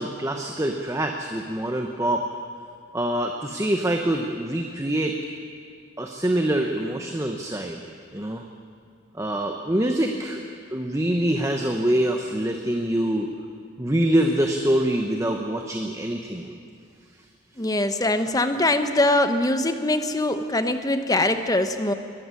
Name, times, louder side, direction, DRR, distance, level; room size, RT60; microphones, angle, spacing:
voice 1, 0.0-2.2 2.9-5.2 6.0-7.8 8.1-8.4 9.2-10.4 10.7-13.3 13.8-16.6, right 1 dB, 15° right, 3 dB, 1.0 m, -25 dB
voice 2, 17.6-21.9, left 1 dB, 20° left, 8 dB, 1.0 m, -22 dB
22.0 x 14.0 x 9.8 m, 2.4 s
head